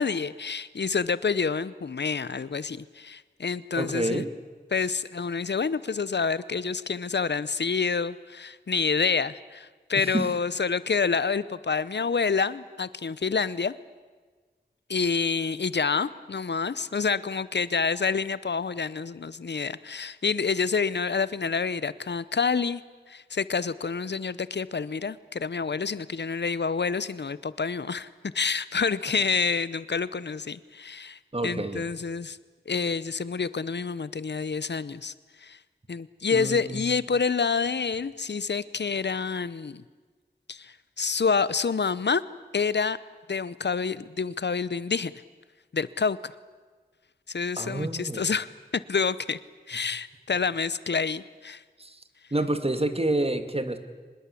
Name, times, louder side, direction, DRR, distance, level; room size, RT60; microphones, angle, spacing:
voice 1, 0.0-4.2 4.7-13.7 14.9-22.8 23.1-28.1 28.3-32.4 32.7-35.1 35.4-35.6 35.9-39.8 40.5-42.2 42.5-43.0 43.3-45.1 45.7-46.3 47.3-48.5 48.9-49.4 49.7-51.6, left 5 dB, 75° left, 17 dB, 0.7 m, -28 dB
voice 2, 3.8-4.3 10.0-10.3 31.3-31.9 36.3-36.8 47.6-48.3 51.8-52.0 52.3-53.8, right 1 dB, 35° right, 9 dB, 2.2 m, -28 dB
25.0 x 21.0 x 8.4 m, 1.4 s
wide cardioid pair, 50°, 18 cm